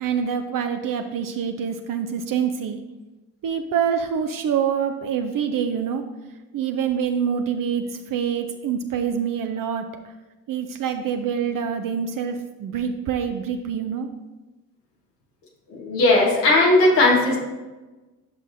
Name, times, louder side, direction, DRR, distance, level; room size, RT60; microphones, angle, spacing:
voice 1, 0.0-2.8 3.4-6.0 6.5-7.8 8.1-9.9 10.5-14.1, right 7 dB, 45° right, 6 dB, 0.7 m, -25 dB
voice 2, 15.7-17.4, left 2 dB, 80° left, -2 dB, 1.4 m, -17 dB
10.0 x 6.1 x 2.6 m, 1.2 s
hypercardioid pair, 45°, 47 cm